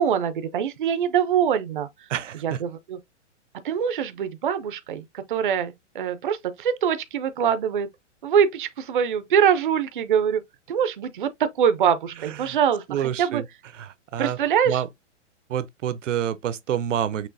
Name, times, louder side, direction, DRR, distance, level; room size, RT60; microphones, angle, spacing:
voice 1, 0.0-1.9 2.4-3.0 3.6-7.9 8.2-10.4 10.7-12.8 13.2-13.4 14.2-14.8, right 8 dB, 45° right, 0.5 m, -23 dB
voice 2, 2.1-2.6 12.2-12.6 12.9-13.5 13.7-14.4 14.6-14.9 15.5-17.3, right 10 dB, 80° right, 0.7 m, -28 dB
6.1 x 2.9 x 2.6 m
hypercardioid pair, 180°, 37 cm